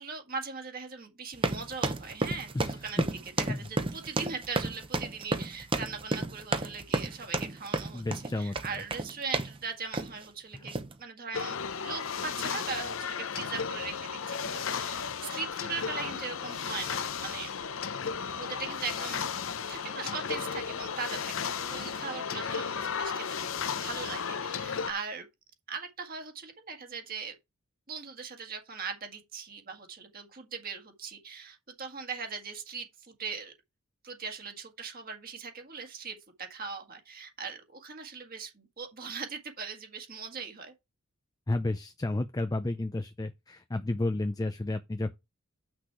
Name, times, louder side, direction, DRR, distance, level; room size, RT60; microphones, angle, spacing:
voice 1, 0.0-2.5 2.8-8.0 8.4-10.7 11.0-17.5 18.4-19.2 19.7-23.4 23.8-25.3 25.7-27.3 27.9-33.5 34.0-40.7, right 5 dB, 40° right, 1.7 m, -40 dB
sound 1, 1.3-9.6 9.9-10.2 10.7-10.9, right 2 dB, 25° right, 0.8 m, -32 dB
voice 2, 2.5-3.0 3.5-3.6 7.9-8.8 10.5-10.7 41.5-45.2, left 2 dB, 15° left, 0.4 m, -32 dB
sound 2, 11.3-24.9, left 6 dB, 60° left, 0.7 m, -34 dB
8.1 x 6.1 x 4.6 m
head